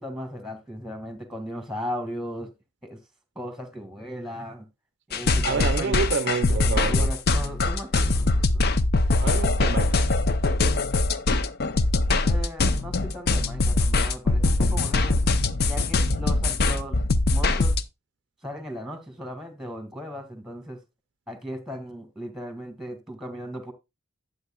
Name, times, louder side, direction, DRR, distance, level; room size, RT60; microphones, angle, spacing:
voice 1, 0.0-2.5 2.8-3.0 3.4-4.7 5.1-6.1 6.5-8.6 12.2-15.2 15.7-17.0 17.3-17.8 18.4-20.8 21.3-23.7, equal, ahead, 1.8 m, -37 dB
sound 1, 5.1-17.8, left 2 dB, 50° left, 0.6 m, -22 dB
voice 2, 5.4-7.1 9.2-10.1, right 5 dB, 55° right, 0.5 m, -28 dB
11.0 x 7.8 x 2.3 m
head